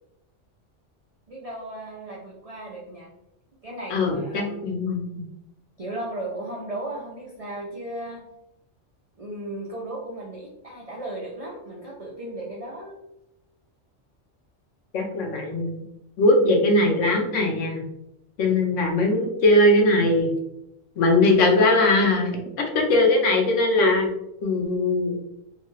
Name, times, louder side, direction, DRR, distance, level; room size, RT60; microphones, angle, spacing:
voice 1, 1.3-3.1 3.6-4.8 5.8-8.2 9.2-13.0 18.4-18.6, right 1 dB, 45° right, -4 dB, 0.4 m, -36 dB
voice 2, 3.9-5.2 14.9-15.7 16.2-17.8 18.4-20.3 21.0-22.3 22.7-24.1 24.4-25.2, left 2 dB, 85° left, 1 dB, 1.0 m, -20 dB
2.8 x 2.3 x 3.1 m, 0.83 s
omnidirectional pair, 1.2 m